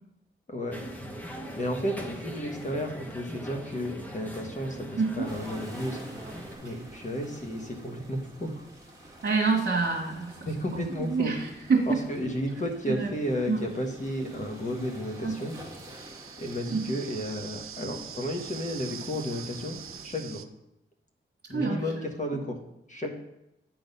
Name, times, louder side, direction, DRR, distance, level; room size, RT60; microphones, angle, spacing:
voice 1, 0.5-0.8 1.5-6.0 6.6-8.7 10.4-11.3 11.9-15.6 16.4-20.4 21.5-22.6 22.9-23.1, equal, 35° left, 2 dB, 1.3 m, -33 dB
sound 1, 0.7-6.5, equal, 10° left, 1.1 m, -40 dB
voice 2, 5.0-5.3 6.6-6.8 9.2-12.0 12.9-13.1 13.5-13.6 15.2-15.3 16.7-16.8 21.5-21.8 22.3-22.4, right 4 dB, 55° right, -4 dB, 1.5 m, -27 dB
sound 2, 5.3-20.1, right 1 dB, 15° right, 1.7 m, -48 dB
sound 3, 13.0-20.5, right 8 dB, 85° right, 0.5 m, -45 dB
8.9 x 4.0 x 5.4 m, 0.86 s
wide cardioid pair, 85°, 21 cm